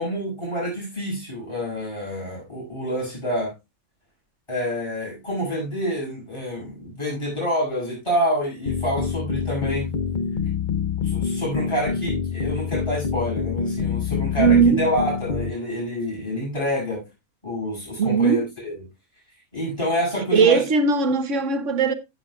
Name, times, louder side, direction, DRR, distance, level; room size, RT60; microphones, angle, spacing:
voice 1, 0.0-3.5 4.5-9.9 11.0-17.0 17.4-18.7 19.5-20.7, equal, 20° left, 7.2 m, -27 dB
sound 1, 8.7-15.5, left 6 dB, 40° left, 0.8 m, -26 dB
voice 2, 14.4-14.8 18.0-18.5 20.3-21.9, right 5 dB, 60° right, 1.3 m, -18 dB
15.5 x 7.8 x 2.3 m
omnidirectional pair, 1.5 m